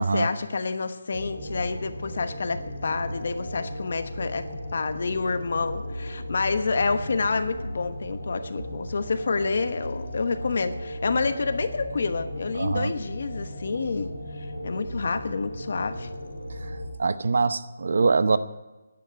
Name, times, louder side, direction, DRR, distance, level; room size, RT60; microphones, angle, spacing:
voice 1, 0.0-16.1, left 4 dB, 60° left, 10 dB, 1.1 m, -28 dB
sound 1, 1.1-16.9, equal, 85° right, 5.4 m, -36 dB
voice 2, 12.6-12.9 17.0-18.4, right 4 dB, 65° right, 13 dB, 0.8 m, -23 dB
11.0 x 9.7 x 9.3 m, 1.1 s
hypercardioid pair, 165°, 0 cm